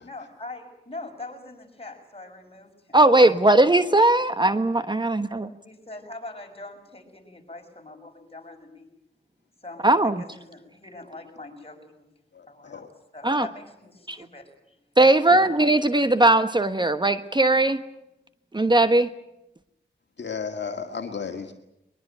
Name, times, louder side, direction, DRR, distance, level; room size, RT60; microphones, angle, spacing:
voice 1, 0.0-3.0 3.5-3.6 3.9-4.0 5.6-8.9 9.6-12.1 12.5-12.9 13.1-14.8 15.2-15.5, left 2 dB, 30° left, 3 dB, 6.6 m, -42 dB
voice 2, 2.9-5.5 9.8-10.2 13.2-13.5 14.1-14.2 15.0-17.8 18.5-19.1, right 2 dB, 25° right, 10 dB, 1.2 m, -19 dB
voice 3, 12.3-12.9 15.3-15.4 20.2-21.6, left 5 dB, 65° left, 4 dB, 2.0 m, -33 dB
22.5 x 21.5 x 9.1 m, 0.87 s
cardioid pair, 65°, 20 cm